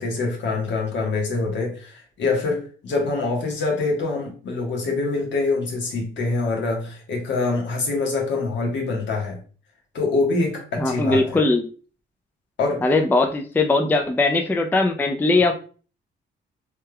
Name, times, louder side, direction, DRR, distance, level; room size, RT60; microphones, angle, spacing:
voice 1, 0.0-9.4 9.9-11.4 12.6-12.8, left 3 dB, 65° left, 0 dB, 1.2 m, -25 dB
voice 2, 10.8-11.6 12.8-15.5, left 2 dB, 10° left, 4 dB, 0.4 m, -20 dB
3.3 x 3.3 x 2.2 m, 0.39 s
cardioid pair, 90°, 20 cm